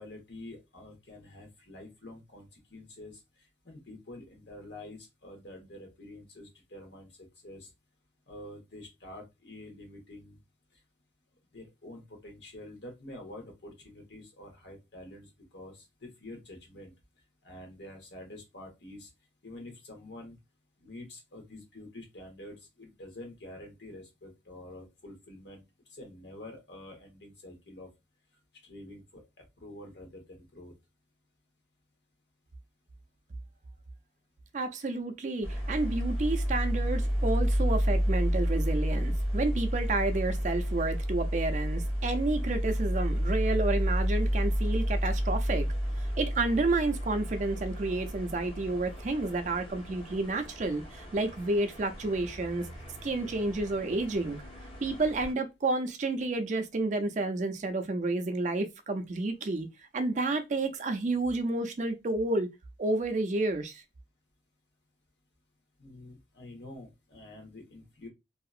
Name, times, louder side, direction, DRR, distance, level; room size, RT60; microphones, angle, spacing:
voice 1, 0.0-3.2 3.6-7.1 7.4-7.7 8.3-10.4 11.5-16.9 17.4-19.1 19.4-20.4 20.8-25.6 25.9-27.9 28.6-29.2 29.6-30.7 65.8-68.1, left 1 dB, 70° left, 1.1 m, -47 dB
voice 2, 34.5-45.7 46.0-52.7 53.0-54.4 54.8-59.7 59.9-62.5 62.8-63.8, right 2 dB, 40° right, 0.4 m, -30 dB
sound 1, 35.4-55.3, equal, 30° left, 0.8 m, -31 dB
2.8 x 2.4 x 2.4 m
head